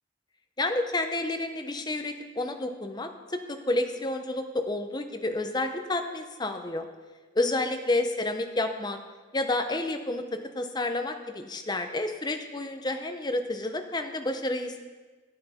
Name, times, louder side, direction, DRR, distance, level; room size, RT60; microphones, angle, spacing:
voice 1, 0.6-6.9 7.3-9.0 9.3-14.8, left 2 dB, 20° left, 6 dB, 0.7 m, -30 dB
10.0 x 9.3 x 4.2 m, 1.3 s
head